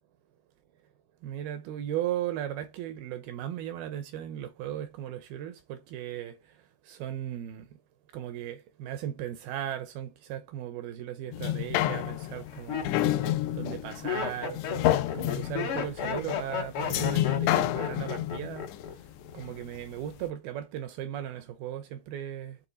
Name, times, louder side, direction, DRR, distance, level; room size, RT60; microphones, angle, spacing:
voice 1, 1.2-7.8 8.1-13.0 13.5-14.6 15.1-18.7 19.3-22.6, right 11 dB, 80° right, 2.3 m, -37 dB
sound 1, 11.3-19.8 20.3-20.4, left 14 dB, 85° left, 3.0 m, -29 dB
Laughter, 11.3-11.7 12.3-18.9 19.2-19.7, left 7 dB, 65° left, 1.3 m, -34 dB
10.0 x 3.8 x 3.9 m
omnidirectional pair, 5.0 m